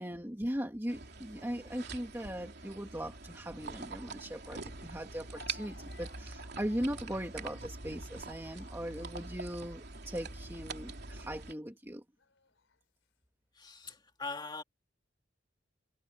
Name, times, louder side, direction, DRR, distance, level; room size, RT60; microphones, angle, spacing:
voice 1, 0.0-12.0, equal, 10° right, 1.9 m, -39 dB
sound 1, 0.9-11.5, right 3 dB, 55° right, 3.2 m, -45 dB
Speech, 4.2-4.3 5.3-10.2 11.0-11.2 12.2-12.8, left 5 dB, 75° left, 4.2 m, -61 dB
voice 2, 13.5-14.6, left 4 dB, 20° left, 2.3 m, -41 dB
head